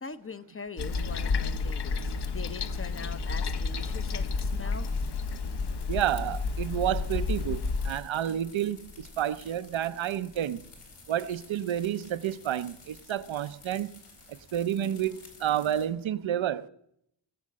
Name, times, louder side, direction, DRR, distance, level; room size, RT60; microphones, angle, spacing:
voice 1, 0.0-4.9, left 4 dB, 30° left, 0.6 m, -42 dB
Toilet flush, 0.8-8.0, left 4 dB, 55° left, 0.9 m, -31 dB
sound 1, 3.8-15.9, left 4 dB, 85° left, 4.1 m, -53 dB
voice 2, 5.9-10.6 11.1-13.9 14.3-16.7, right 11 dB, 70° right, 0.7 m, -30 dB
19.0 x 6.5 x 7.5 m
cardioid pair, 85°, 49 cm